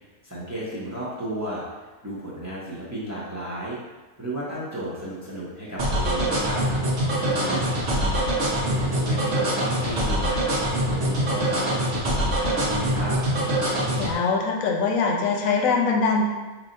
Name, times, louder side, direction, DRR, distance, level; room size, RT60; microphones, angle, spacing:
voice 1, 0.2-3.8 4.2-6.6 7.2-8.3 8.7-10.5 10.8-13.2, right 1 dB, 15° right, -8 dB, 0.7 m, -33 dB
sound 1, 5.8-14.1, equal, 65° right, 1.3 m, -24 dB
voice 2, 14.0-16.3, left 4 dB, 90° left, 1 dB, 1.1 m, -23 dB
5.6 x 2.9 x 2.6 m, 1.2 s
omnidirectional pair, 1.4 m